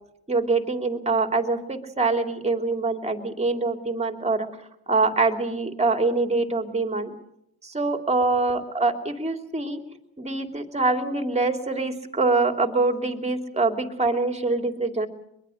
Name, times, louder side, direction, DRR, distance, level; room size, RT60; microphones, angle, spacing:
voice 1, 0.3-4.5 4.9-7.1 7.6-9.8 10.2-15.1, right 3 dB, 15° right, 5 dB, 2.9 m, -24 dB
22.5 x 22.5 x 6.5 m, 0.79 s
supercardioid pair, 80°, 40 cm